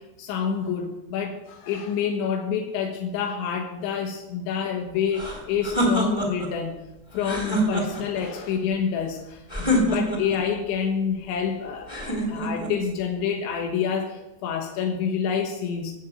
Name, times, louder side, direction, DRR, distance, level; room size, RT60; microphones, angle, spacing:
voice 1, 0.2-6.8 7.1-15.9, left 7 dB, 85° left, 2 dB, 3.6 m, -28 dB
sound 1, 5.1-6.5 7.2-8.2 9.5-10.4 11.9-12.7, equal, 10° left, 2.2 m, -25 dB
18.0 x 6.1 x 7.9 m, 0.98 s
omnidirectional pair, 5.1 m